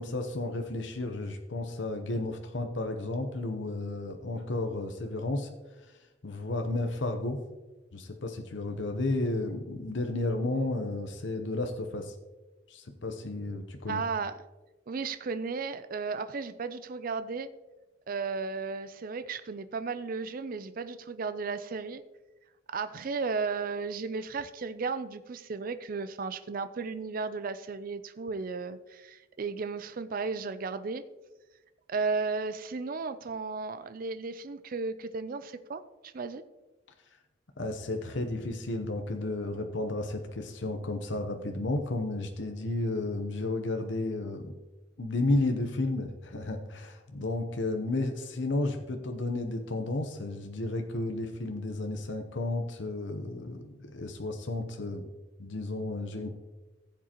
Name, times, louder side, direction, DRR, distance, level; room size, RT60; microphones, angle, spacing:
voice 1, 0.0-5.5 6.2-7.4 7.9-12.1 12.7-14.0 37.6-44.5 45.0-55.1 55.4-56.3, left 2 dB, 70° left, 5 dB, 0.8 m, -32 dB
voice 2, 13.9-14.4 14.9-17.5 18.1-22.0 22.7-31.0 31.9-36.4, right 4 dB, 45° right, 12 dB, 0.4 m, -34 dB
15.5 x 7.5 x 2.9 m, 1.1 s
head